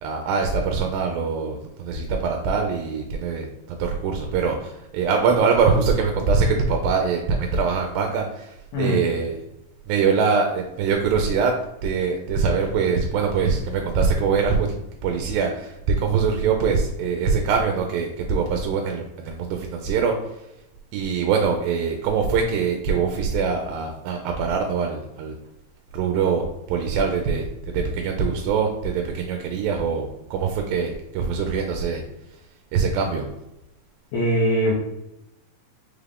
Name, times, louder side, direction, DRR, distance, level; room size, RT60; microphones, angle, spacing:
voice 1, 0.0-9.4 9.9-11.5 11.8-14.7 15.0-20.5 20.9-25.4 25.9-32.0 32.3-32.4 32.7-33.3, right 5 dB, 85° right, 3 dB, 2.3 m, -23 dB
voice 2, 34.1-34.7, equal, 80° left, -3 dB, 1.5 m, -21 dB
5.5 x 3.3 x 2.4 m, 0.88 s
omnidirectional pair, 4.0 m